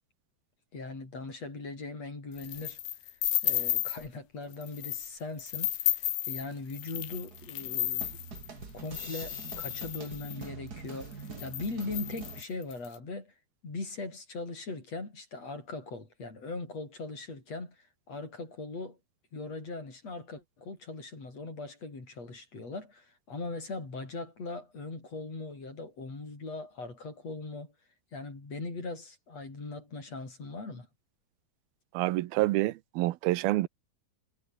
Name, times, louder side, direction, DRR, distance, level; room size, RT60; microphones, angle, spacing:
voice 1, 0.7-3.1 3.4-8.2 8.7-13.3 13.6-19.0 19.3-27.7 28.1-30.9, left 3 dB, 40° left, 7.8 m, -40 dB
sound 1, 2.4-4.1 4.5-5.1 5.4-10.4 11.0-11.1 11.3-12.9, left 14 dB, 85° left, 3.4 m, -33 dB
sound 2, 6.9-12.4, right 5 dB, 30° right, 2.3 m, -45 dB
voice 2, 31.9-33.7, right 18 dB, 80° right, 2.7 m, -27 dB
omnidirectional pair, 4.4 m